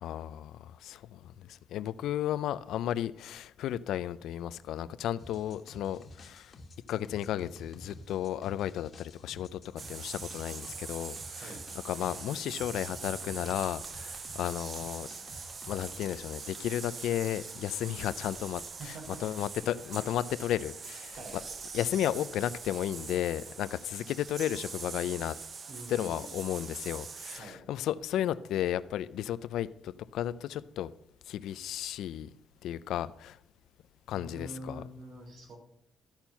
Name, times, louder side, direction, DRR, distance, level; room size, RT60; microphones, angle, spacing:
voice 1, 0.0-6.5 6.9-11.5 11.8-15.1 15.7-21.2 21.7-25.4 25.9-30.9 31.3-32.3 32.6-33.4 34.1-34.8, left 11 dB, 80° left, 15 dB, 0.4 m, -34 dB
sound 1, 5.2-16.1, left 2 dB, 45° left, 1.4 m, -51 dB
sound 2, 9.8-27.4, right 5 dB, 45° right, 0.6 m, -43 dB
sound 3, 13.4-14.9 15.2-23.1, equal, 5° right, 1.7 m, -58 dB
voice 2, 18.8-19.2 21.2-21.4 25.7-26.3 27.4-27.6 34.1-35.6, right 2 dB, 70° right, -1 dB, 3.1 m, -45 dB
13.0 x 4.4 x 5.6 m, 0.74 s
cardioid pair, 90°, 0 cm